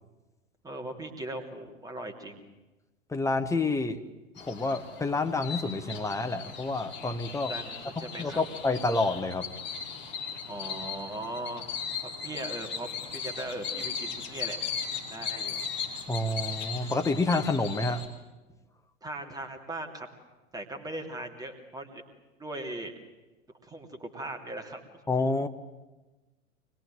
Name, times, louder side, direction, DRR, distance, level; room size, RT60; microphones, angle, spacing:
voice 1, 0.6-2.4 7.5-8.4 10.5-11.7 12.0-14.6 15.1-15.7 19.0-20.1 20.5-22.0 22.4-22.9 23.6-24.8, right 1 dB, 10° right, 3 dB, 3.0 m, -39 dB
voice 2, 3.1-4.0 4.4-7.5 8.2-9.5 16.1-18.0 25.1-25.5, left 3 dB, 10° left, 6 dB, 1.2 m, -28 dB
sound 1, 4.4-18.1, left 6 dB, 30° left, 5.0 m, -38 dB
24.5 x 21.0 x 9.1 m, 1.1 s
figure-of-eight pair, 95°, 38 cm